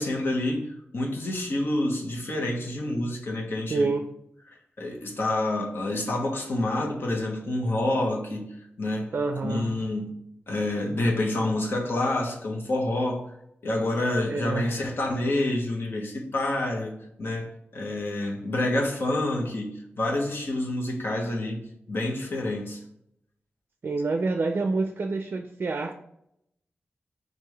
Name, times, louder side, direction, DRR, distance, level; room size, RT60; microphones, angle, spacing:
voice 1, 0.0-3.9 4.8-8.5 8.8-9.1 9.4-10.1 10.5-13.3 13.6-21.6 21.9-22.8, left 1 dB, 65° left, 1.1 m, -28 dB
voice 2, 3.7-4.1 9.1-9.7 14.3-14.7 23.8-25.9, right 3 dB, 55° right, 0.4 m, -27 dB
4.6 x 2.6 x 3.3 m
cardioid pair, 60°, 4 cm